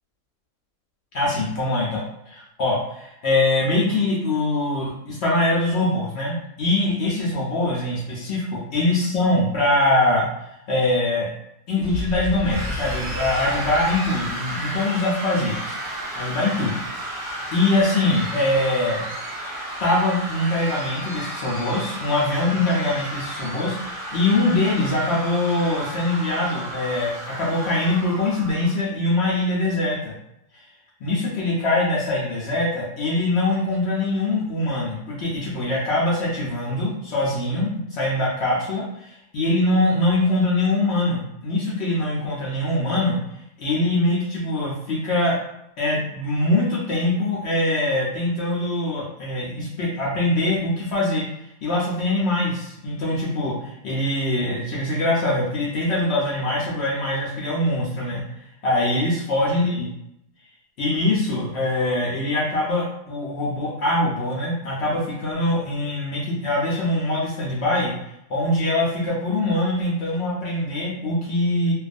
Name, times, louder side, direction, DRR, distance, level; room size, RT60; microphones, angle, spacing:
voice 1, 1.1-10.3 10.7-11.3 11.7-15.8 16.2-16.8 17.1-19.0 19.8-30.1 31.0-43.2 43.6-45.4 45.8-51.2 51.6-58.2 58.6-59.9 60.8-67.9 68.3-71.7, left 2 dB, 70° left, -5 dB, 0.6 m, -23 dB
sound 1, 11.8-15.6, left 3 dB, 25° right, 0.9 m, -34 dB
sound 2, 12.4-28.7, right 1 dB, 50° right, 0.5 m, -33 dB
2.4 x 2.3 x 2.4 m, 0.80 s
omnidirectional pair, 1.7 m